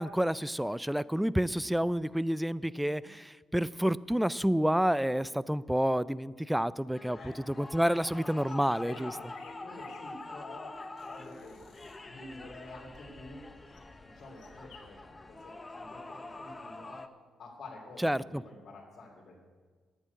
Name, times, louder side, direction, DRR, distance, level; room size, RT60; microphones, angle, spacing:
voice 1, 0.0-9.1 18.0-18.4, equal, 5° right, 19 dB, 0.3 m, -29 dB
sound 1, 6.9-17.1, left 2 dB, 20° left, 0.7 m, -46 dB
sound 2, 8.3-12.0 13.7-13.9 14.2-14.9, left 7 dB, 80° left, 2.0 m, -57 dB
voice 2, 8.8-11.7 12.1-13.4 14.0-15.0 15.3-17.0 17.4-19.4, left 2 dB, 55° left, -6 dB, 3.1 m, -49 dB
11.0 x 9.0 x 8.2 m, 1.5 s
cardioid pair, 90°, 0 cm